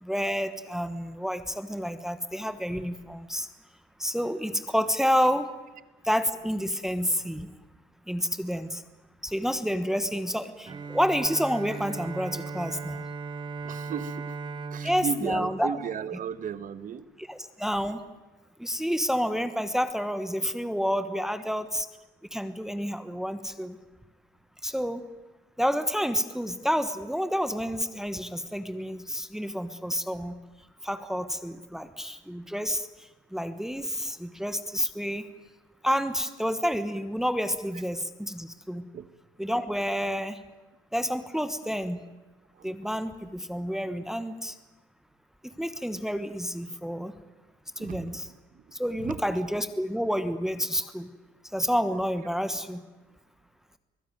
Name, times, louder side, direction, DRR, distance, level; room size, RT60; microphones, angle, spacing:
voice 1, 0.0-3.5 4.0-5.5 6.0-7.5 8.1-8.8 9.2-13.0 14.8-15.7 17.3-18.0 18.6-21.9 22.3-23.8 24.6-25.0 25.6-30.4 30.8-32.9 33.3-35.3 35.8-38.8 39.4-40.4 40.9-42.0 42.6-44.5 45.6-47.1 47.8-48.2 48.7-51.1 51.5-52.8, equal, 5° right, 11 dB, 1.2 m, -29 dB
Bowed string instrument, 10.7-16.5, right 4 dB, 25° right, 1.3 m, -38 dB
voice 2, 13.6-14.3 14.7-17.0 38.9-39.1 42.5-42.7 47.8-48.2 48.5-49.4, right 7 dB, 50° right, 14 dB, 1.3 m, -35 dB
23.5 x 16.0 x 9.2 m, 1.2 s
cardioid pair, 110°, 17 cm